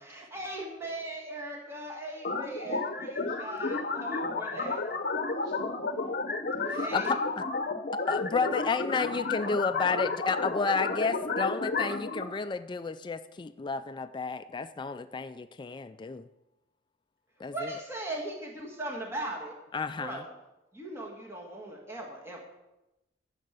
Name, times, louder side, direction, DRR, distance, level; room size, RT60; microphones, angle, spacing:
voice 1, 0.0-4.8 6.6-7.2 17.5-19.5 20.0-20.2 20.7-22.4, right 1 dB, 15° right, -1 dB, 1.8 m, -39 dB
sound 1, 2.2-12.2, left 3 dB, 50° left, 0.8 m, -32 dB
voice 2, 3.3-5.8 6.2-6.7 7.2-8.6 8.9-9.9 10.1-10.3 10.7-12.2, equal, 65° right, -4 dB, 5.2 m, -50 dB
voice 3, 6.9-7.4 8.1-16.2 17.4-17.7 19.7-20.2, left 4 dB, 25° left, 11 dB, 0.3 m, -31 dB
12.5 x 6.4 x 8.1 m, 0.99 s
head